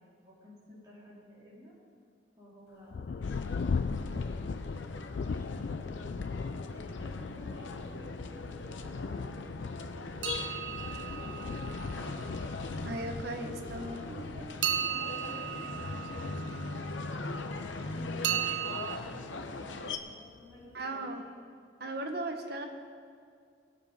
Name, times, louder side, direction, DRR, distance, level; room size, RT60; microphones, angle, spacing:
voice 1, 0.0-1.7 2.4-4.4 4.6-6.0 6.7-9.6 13.4-17.4 17.9-21.2 22.4-22.7, left 1 dB, 20° right, -7 dB, 3.7 m, -52 dB
Thunder, 2.9-19.0 19.7-19.8 20.4-20.8, left 5 dB, 55° left, 0.4 m, -39 dB
sound 1, 3.2-20.0, left 3 dB, 80° left, 0.8 m, -40 dB
sound 2, 10.2-12.3 14.6-17.0 18.2-19.0, right 10 dB, 70° right, 0.6 m, -35 dB
voice 2, 12.8-14.0 20.7-21.2 21.8-22.6, right 2 dB, 55° right, 4 dB, 1.2 m, -37 dB
19.0 x 7.2 x 5.3 m, 2.2 s
head